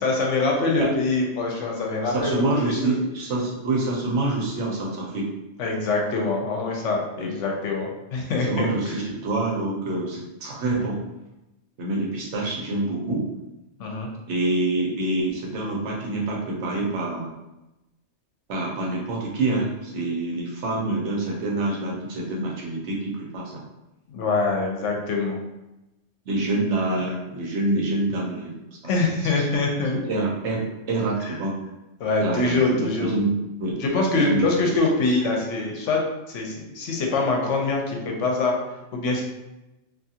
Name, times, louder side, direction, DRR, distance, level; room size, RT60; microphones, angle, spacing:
voice 1, 0.0-2.9 5.6-9.0 13.8-14.1 24.1-25.4 28.8-30.0 31.2-31.3 32.0-33.1 33.8-36.0 36.3-38.6 38.9-39.2, left 3 dB, 85° left, 0 dB, 1.0 m, -24 dB
voice 2, 2.1-5.3 7.1-7.3 8.4-11.0 11.8-13.3 14.3-17.3 18.5-23.6 26.3-28.5 28.8-28.9 29.4-29.5 29.9-31.5 32.2-33.3 33.6-33.8 34.1-34.7 35.0-35.1, right 2 dB, 75° right, -3 dB, 1.0 m, -26 dB
2.6 x 2.4 x 2.7 m, 0.96 s
omnidirectional pair, 1.2 m